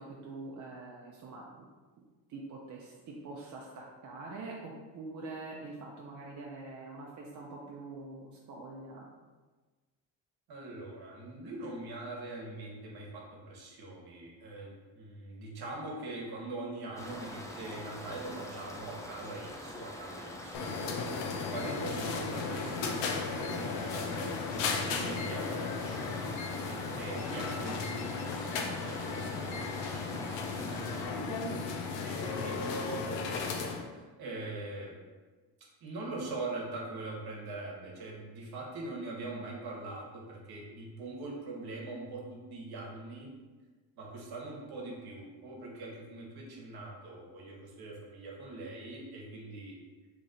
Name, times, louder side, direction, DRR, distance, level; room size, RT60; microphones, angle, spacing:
voice 1, 0.0-1.7 2.3-9.1 20.9-21.1 23.5-23.9 31.4-31.7, right 3 dB, 45° right, -2 dB, 0.6 m, -45 dB
voice 2, 10.5-20.9 21.2-24.1 24.4-26.2 27.0-31.4 32.0-35.0 35.8-43.3 44.0-49.7, right 2 dB, 60° right, -1 dB, 1.1 m, -43 dB
sound 1, 17.0-31.1, left 1 dB, 10° left, 0.3 m, -44 dB
sound 2, 20.5-33.8, left 4 dB, 90° left, 0.6 m, -35 dB
3.0 x 2.5 x 4.1 m, 1.3 s
cardioid pair, 85°, 43 cm